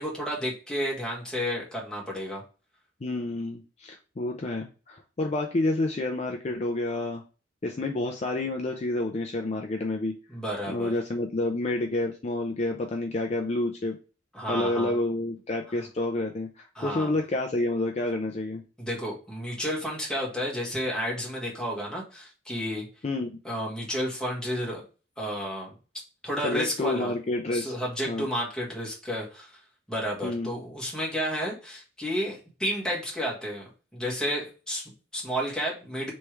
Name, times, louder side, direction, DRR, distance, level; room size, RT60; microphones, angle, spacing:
voice 1, 0.0-2.4 10.3-10.9 14.3-15.0 16.7-17.1 18.8-22.9 23.4-24.8 25.2-25.7 26.2-27.1 27.5-29.6 29.9-36.1, equal, 5° left, -4 dB, 1.5 m, -31 dB
voice 2, 3.0-7.2 7.6-10.2 10.7-14.0 14.5-18.6 23.0-23.3 26.4-27.7 28.1-28.3 30.2-30.5, left 2 dB, 35° left, 3 dB, 0.4 m, -29 dB
3.3 x 3.2 x 4.5 m, 0.35 s
head